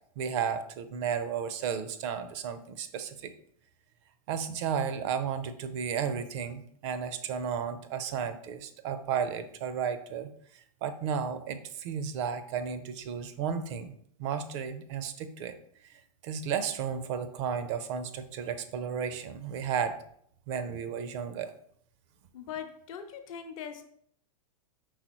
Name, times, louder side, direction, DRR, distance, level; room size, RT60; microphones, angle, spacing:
voice 1, 0.2-3.3 4.3-13.9 14.2-15.6 15.9-20.0 20.5-21.5, right 7 dB, 50° right, 10 dB, 0.5 m, -33 dB
voice 2, 22.3-23.9, left 8 dB, 60° left, 7 dB, 0.7 m, -41 dB
4.7 x 3.5 x 3.0 m, 0.65 s
hypercardioid pair, 110°, 20 cm